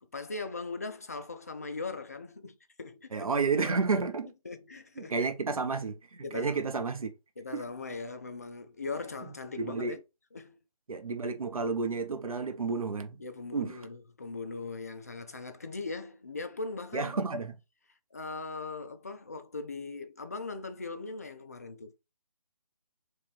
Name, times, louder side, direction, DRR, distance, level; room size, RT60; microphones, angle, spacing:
voice 1, 0.1-3.3 4.4-5.3 6.2-6.7 7.4-10.0 10.3-10.6 13.2-17.2 18.1-21.9, left 3 dB, 25° left, 0.4 m, -40 dB
voice 2, 3.1-4.3 5.0-7.1 7.5-7.6 9.6-10.0 10.9-13.2 13.5-13.7 16.9-17.5, right 4 dB, 75° right, 1.0 m, -31 dB
3.3 x 3.0 x 4.6 m
figure-of-eight pair, 165°, 18 cm